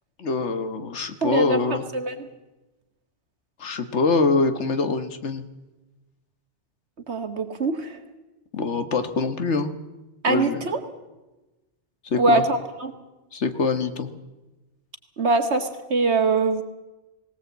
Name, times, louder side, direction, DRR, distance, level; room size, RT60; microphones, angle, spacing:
voice 1, 0.2-1.8 3.6-5.4 8.5-9.7 10.3-10.6 12.0-12.4 13.3-14.1, left 4 dB, 80° left, 9 dB, 1.7 m, -24 dB
voice 2, 1.2-2.3 7.1-8.0 10.2-10.8 12.1-12.9 15.2-16.6, right 3 dB, 70° right, 7 dB, 2.0 m, -23 dB
19.5 x 18.0 x 8.1 m, 1.1 s
omnidirectional pair, 1.2 m